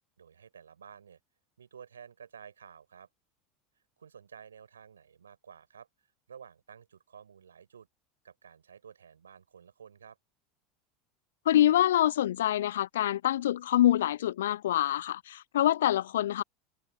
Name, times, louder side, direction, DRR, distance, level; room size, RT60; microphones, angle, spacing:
voice 1, 0.2-1.2 1.6-3.1 4.0-5.9 6.3-7.9 8.2-10.2, right 7 dB, 80° right, 6.1 m, -52 dB
voice 2, 11.5-16.4, left 12 dB, 70° left, 0.4 m, -25 dB
figure-of-eight pair, 75°, 0 cm